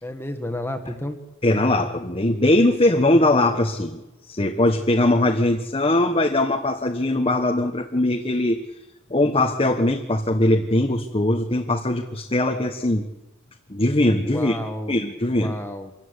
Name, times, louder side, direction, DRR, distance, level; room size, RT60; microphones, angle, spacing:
voice 1, 0.0-1.2 14.3-15.0 15.3-15.9, left 1 dB, 10° left, 5 dB, 1.7 m, -31 dB
voice 2, 1.4-4.0 4.3-8.6 9.1-13.1 13.7-14.6 14.9-15.5, left 1 dB, 25° left, 3 dB, 1.3 m, -20 dB
26.0 x 14.5 x 9.9 m, 1.0 s
head